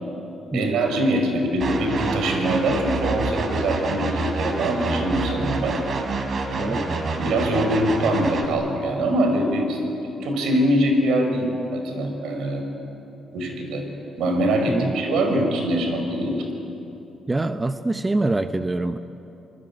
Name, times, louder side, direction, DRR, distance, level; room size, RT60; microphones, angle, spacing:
voice 1, 0.5-5.8 6.6-6.8 7.1-9.8 10.2-12.6 13.3-13.8 14.2-16.5, right 1 dB, 80° right, 4 dB, 5.2 m, -23 dB
sound 1, 1.6-8.5, right 3 dB, 50° right, 3.5 m, -28 dB
voice 2, 6.6-7.0 14.7-15.0 17.3-19.0, right 2 dB, 20° right, 9 dB, 0.9 m, -25 dB
26.0 x 20.0 x 9.8 m, 3.0 s
cardioid pair, 90°, 0 cm